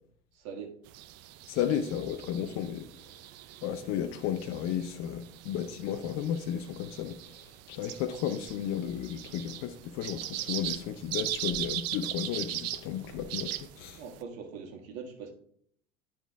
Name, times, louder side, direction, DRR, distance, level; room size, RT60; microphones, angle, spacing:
voice 1, 0.3-0.8 14.0-15.3, right 6 dB, 65° right, 1.5 m, -42 dB
sound 1, 0.9-14.2, right 13 dB, 50° right, 0.6 m, -40 dB
voice 2, 1.5-2.8 3.6-7.2 7.7-14.0, left 9 dB, 50° left, 0.6 m, -33 dB
10.0 x 4.4 x 3.5 m
hypercardioid pair, 70°, 33 cm